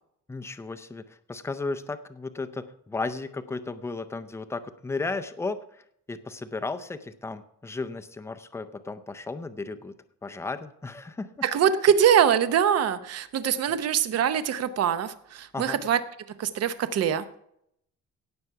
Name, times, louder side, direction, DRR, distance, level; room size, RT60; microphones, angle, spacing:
voice 1, 0.3-5.6 6.1-9.9 10.2-11.3 15.5-15.8, left 3 dB, 10° left, 9 dB, 0.5 m, -34 dB
voice 2, 11.4-16.0 16.4-17.2, right 8 dB, 50° right, 11 dB, 0.8 m, -23 dB
17.5 x 6.8 x 4.7 m, 0.73 s
cardioid pair, 170°, 33 cm